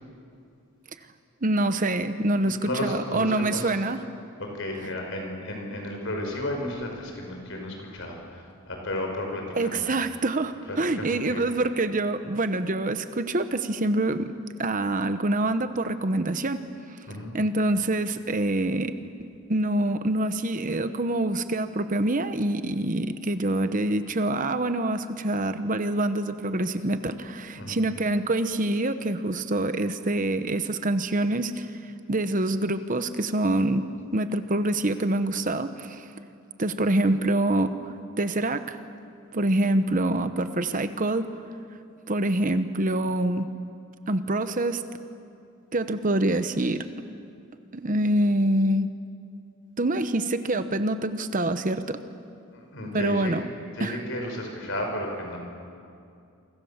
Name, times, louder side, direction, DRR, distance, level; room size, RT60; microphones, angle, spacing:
voice 1, 1.4-4.0 9.6-14.3 14.6-16.6 17.3-19.0 19.5-36.1 36.6-38.8 39.3-41.4 42.1-43.5 44.1-44.8 45.7-46.9 47.7-48.9 49.8-52.0 52.9-53.4 53.8-54.0, right 1 dB, 35° right, 10 dB, 1.0 m, -26 dB
voice 2, 2.6-3.8 4.4-9.8 10.7-11.4 17.1-17.3 27.6-27.8 52.5-53.3 53.7-55.4, left 1 dB, 60° left, 2 dB, 5.9 m, -33 dB
28.5 x 25.0 x 7.3 m, 2.5 s
head